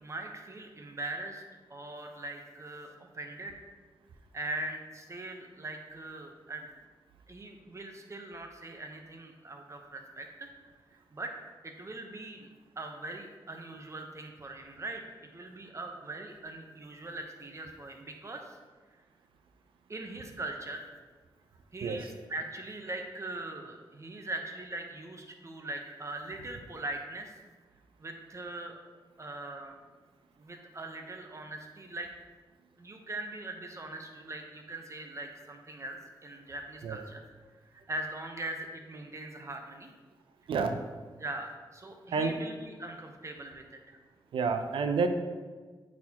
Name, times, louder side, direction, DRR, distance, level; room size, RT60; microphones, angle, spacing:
voice 1, 0.0-1.4 1.7-3.6 4.3-6.7 7.3-10.5 10.9-11.3 11.6-12.5 12.8-15.0 15.3-18.6 19.9-20.9 21.7-27.3 28.0-28.8 29.2-29.7 30.4-32.1 32.8-37.2 37.7-39.9 41.2-44.0, right 2 dB, 35° right, 4 dB, 0.9 m, -41 dB
voice 2, 44.3-45.1, right 5 dB, 85° right, 7 dB, 0.5 m, -29 dB
8.4 x 4.3 x 2.9 m, 1.4 s
cardioid pair, 65°, 9 cm